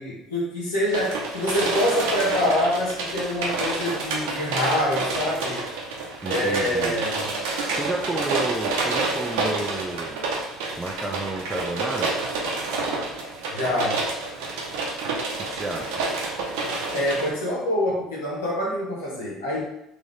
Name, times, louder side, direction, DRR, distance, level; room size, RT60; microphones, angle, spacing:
voice 1, 0.0-5.6 6.2-7.3 13.5-14.0 16.9-19.6, left 1 dB, 85° left, -5 dB, 1.3 m, -25 dB
sound 1, 0.9-17.3, right 3 dB, 75° right, 0.8 m, -28 dB
voice 2, 6.2-7.0 7.7-10.3 10.8-12.1 15.3-16.0, right 2 dB, 15° right, 0 dB, 0.5 m, -31 dB
3.8 x 2.9 x 3.3 m, 0.78 s
hypercardioid pair, 65°, 0 cm